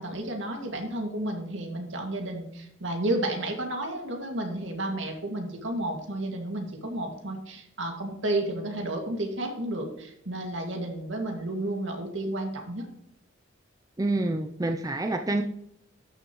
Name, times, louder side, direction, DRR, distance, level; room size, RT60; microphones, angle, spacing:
voice 1, 0.0-12.9, right 1 dB, 70° right, 2 dB, 2.1 m, -32 dB
voice 2, 14.0-15.4, right 2 dB, 20° right, 6 dB, 0.4 m, -27 dB
13.0 x 6.5 x 3.1 m, 0.74 s
head